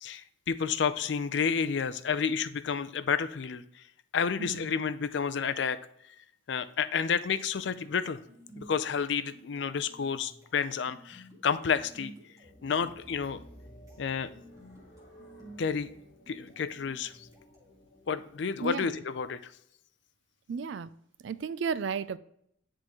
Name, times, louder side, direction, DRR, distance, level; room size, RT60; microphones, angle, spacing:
voice 1, 0.0-3.8 4.1-5.8 6.5-8.2 8.6-12.1 12.6-13.4 14.0-14.3 15.6-15.9 16.3-17.3 18.1-19.5, left 6 dB, 60° left, 13 dB, 0.4 m, -30 dB
sound 1, 7.5-17.8, right 1 dB, 20° right, 1.7 m, -54 dB
sound 2, 12.4-18.7, equal, 40° left, 1.6 m, -55 dB
voice 2, 20.5-20.9 21.2-22.2, right 6 dB, 65° right, 15 dB, 0.3 m, -33 dB
9.8 x 3.7 x 3.0 m, 0.72 s
head